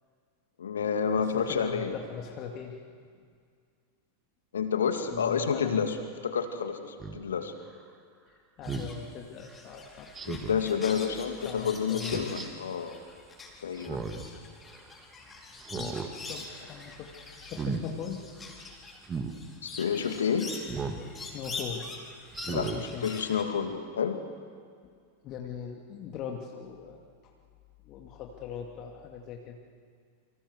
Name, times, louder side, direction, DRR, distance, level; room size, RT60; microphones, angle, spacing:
voice 1, 0.6-2.0 4.5-6.0 6.2-7.5 10.3-13.0 13.6-14.0 19.6-20.5 22.5-24.2, left 7 dB, 65° left, 6 dB, 2.4 m, -29 dB
voice 2, 1.2-2.8 5.1-5.9 8.3-10.1 10.9-12.3 15.7-16.0 16.3-17.1 17.4-18.3 21.2-21.9 22.4-23.1 25.2-27.0 27.9-29.6, left 7 dB, 35° left, 2 dB, 2.5 m, -40 dB
Speech synthesizer, 7.0-7.2 8.6-8.9 10.1-10.6 12.0-12.5 13.8-14.3 14.7-14.8 15.6-16.1 16.5-16.8 17.4-17.8 19.0-19.3 20.7-21.0 21.5-21.6 22.3-22.8 23.3-23.4, right 5 dB, 20° right, 2.3 m, -35 dB
sound 1, 8.6-23.4, left 3 dB, 15° left, 4.6 m, -44 dB
28.5 x 25.5 x 6.4 m, 2.1 s
figure-of-eight pair, 90°, 0 cm